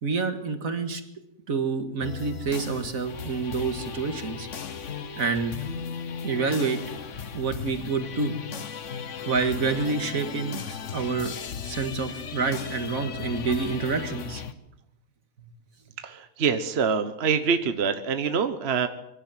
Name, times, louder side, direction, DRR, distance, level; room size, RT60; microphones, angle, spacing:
voice 1, 0.0-1.0 1.5-4.5 5.2-5.6 6.2-6.8 7.3-8.3 9.3-11.3 11.6-14.4, right 4 dB, 75° right, 8 dB, 2.2 m, -28 dB
sound 1, 2.0-14.5, left 7 dB, 60° left, 1.4 m, -36 dB
voice 2, 16.0-18.9, right 6 dB, 50° right, 9 dB, 1.3 m, -25 dB
24.0 x 12.0 x 9.1 m, 0.82 s
omnidirectional pair, 1.5 m